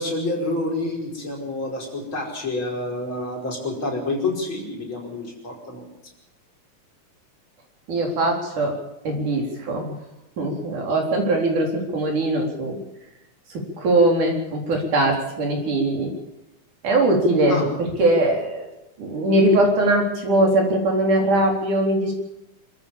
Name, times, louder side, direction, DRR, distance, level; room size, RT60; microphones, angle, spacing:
voice 1, 0.0-5.8 17.5-17.7, left 2 dB, 40° left, 0 dB, 5.9 m, -28 dB
voice 2, 7.9-8.7 9.1-10.0 10.4-12.8 13.8-16.1 16.8-17.6 18.0-18.7 19.0-22.1, right 1 dB, 75° right, 1 dB, 5.5 m, -21 dB
26.5 x 14.0 x 7.2 m, 0.92 s
omnidirectional pair, 3.6 m